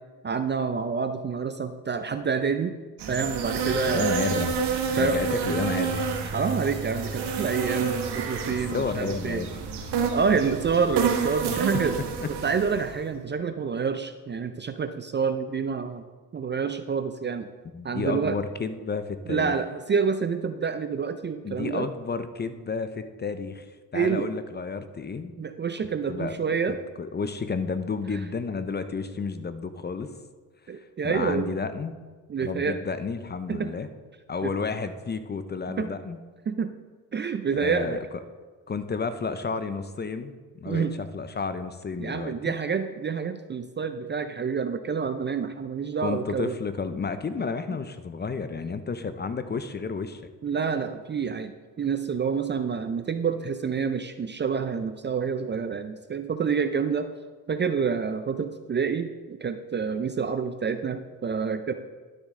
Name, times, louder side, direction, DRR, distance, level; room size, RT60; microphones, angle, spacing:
voice 1, 0.2-2.7 3.1-4.1 5.0-5.2 6.3-9.4 10.1-12.0 12.4-16.0 16.3-17.5 17.8-18.4 19.3-21.9 23.9-24.3 25.4-26.8 30.7-31.5 32.3-32.8 33.5-33.7 34.4-34.5 35.8-35.9 36.5-36.7 37.1-38.0 40.7-40.9 42.0-46.6 50.4-57.1 57.5-61.7, right 6 dB, 25° right, 9 dB, 0.5 m, -28 dB
sound 1, 3.0-12.9, right 5 dB, 65° right, 1.5 m, -29 dB
voice 2, 3.8-4.5 5.0-6.1 8.7-9.6 11.4-11.6 12.2-12.3 17.7-19.5 21.4-23.6 23.9-25.3 26.1-26.4 26.7-30.1 31.0-31.9 32.4-33.9 34.3-36.2 37.6-38.0 38.7-42.5 46.0-50.2, left 4 dB, 25° left, 11 dB, 0.6 m, -31 dB
12.0 x 6.4 x 3.7 m, 1.4 s
supercardioid pair, 75°, 43 cm